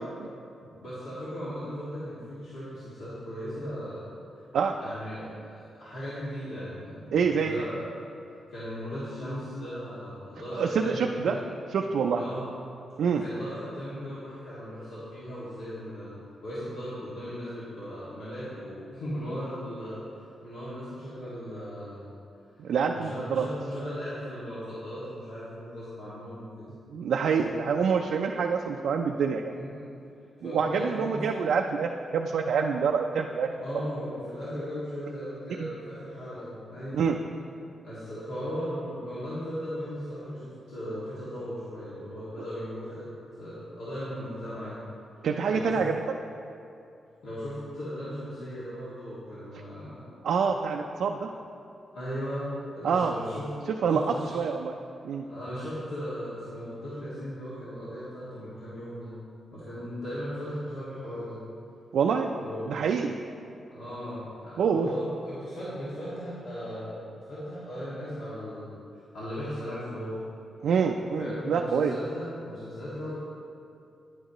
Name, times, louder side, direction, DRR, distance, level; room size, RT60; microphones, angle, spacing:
voice 1, 0.6-4.4 4.8-7.1 7.3-7.8 8.5-11.4 12.1-12.5 13.2-20.1 20.4-22.1 22.7-26.7 27.7-27.8 29.5-29.9 30.4-31.4 33.5-37.0 37.8-43.1 43.4-44.8 45.5-45.9 47.2-50.0 51.9-53.5 53.9-54.4 55.2-59.2 59.5-61.5 62.4-62.7 63.7-70.2 71.2-73.2, equal, 85° left, -11 dB, 2.1 m, -37 dB
voice 2, 7.1-7.6 10.6-11.4 11.7-12.2 13.0-13.2 22.6-23.5 26.7-29.5 30.4-33.5 35.6-35.7 36.9-37.2 45.2-46.0 50.2-51.3 52.8-53.1 53.8-54.7 55.0-55.3 61.9-62.3 62.7-63.1 64.6-64.9 70.6-71.9, right 6 dB, 80° right, 2 dB, 0.4 m, -26 dB
10.0 x 8.8 x 3.0 m, 2.6 s
wide cardioid pair, 125°, 0 cm